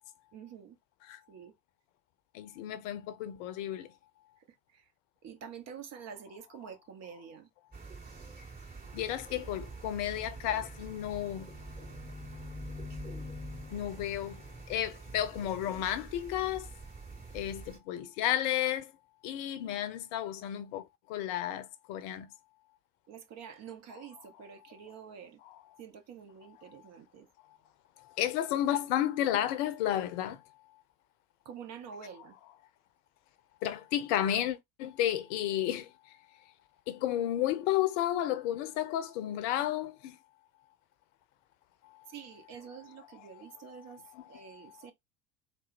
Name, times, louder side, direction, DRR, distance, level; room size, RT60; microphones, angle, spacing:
voice 1, 0.3-0.8 1.3-1.5 4.5-4.9 5.2-7.5 23.1-25.4 25.8-27.3 31.4-32.4 42.1-44.0 44.3-44.9, right 7 dB, 35° right, 0.8 m, -47 dB
voice 2, 2.3-3.9 8.9-11.5 13.7-14.3 14.7-16.7 17.3-18.9 19.2-20.8 21.1-22.3 28.2-30.4 33.6-35.9 36.9-40.1 44.2-44.3, left 12 dB, 50° left, 0.7 m, -32 dB
sound 1, 7.7-17.8, right 4 dB, 20° right, 2.5 m, -47 dB
sound 2, 9.9-14.6, left 4 dB, 15° left, 0.8 m, -46 dB
3.8 x 2.1 x 4.1 m
figure-of-eight pair, 70°, 48 cm